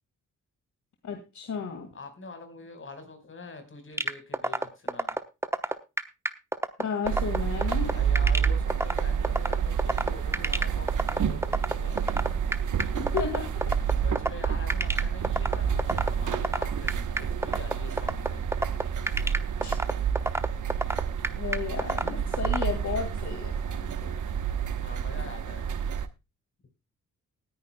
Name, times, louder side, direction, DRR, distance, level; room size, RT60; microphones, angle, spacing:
voice 1, 1.0-1.9 6.8-7.9 12.9-13.6 19.6-19.8 21.4-24.2, left 6 dB, 65° left, 5 dB, 2.1 m, -33 dB
voice 2, 1.9-5.1 7.8-12.2 14.0-18.4 22.0-22.4 24.8-25.7, left 3 dB, 40° left, 7 dB, 4.8 m, -45 dB
sound 1, 4.0-22.6, right 1 dB, 10° right, 1.0 m, -27 dB
sound 2, 7.0-26.1, right 7 dB, 70° right, 1.1 m, -29 dB
19.0 x 10.5 x 2.2 m, 0.26 s
cardioid pair, 100°, 32 cm